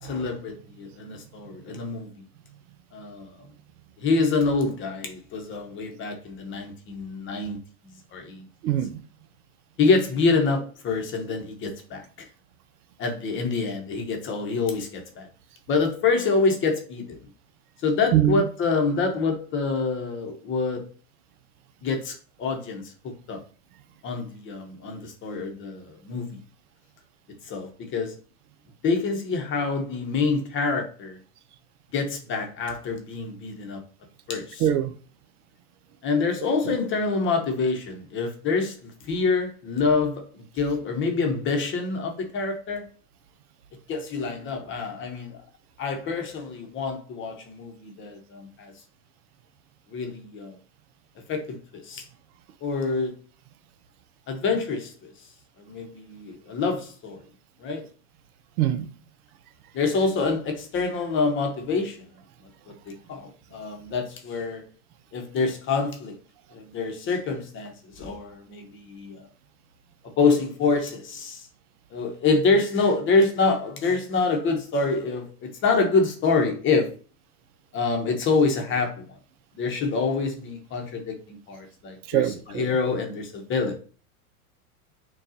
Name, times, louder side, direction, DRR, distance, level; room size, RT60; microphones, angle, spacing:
voice 1, 0.0-2.2 2.9-3.3 4.0-7.6 8.1-8.4 9.8-12.0 13.0-15.3 15.7-17.0 17.8-20.9 21.8-23.4 24.0-26.4 27.5-28.1 28.8-31.2 31.9-33.8 34.3-34.6 36.0-42.8 43.9-45.4 45.8-48.7 49.9-50.6 51.3-52.0 52.6-53.1 54.3-55.1 55.7-57.2 57.6-57.8 59.7-62.0 62.9-64.6 65.1-66.2 66.5-69.2 70.2-71.5 71.9-76.9 77.7-78.9 79.5-83.8, left 4 dB, 25° left, 0.8 m, -26 dB
voice 2, 8.6-9.0 18.1-18.4 34.6-34.9 36.7-36.8 58.6-58.9 82.1-82.7, right 11 dB, 75° right, 0.6 m, -23 dB
6.4 x 2.3 x 2.7 m
supercardioid pair, 130°, 45 cm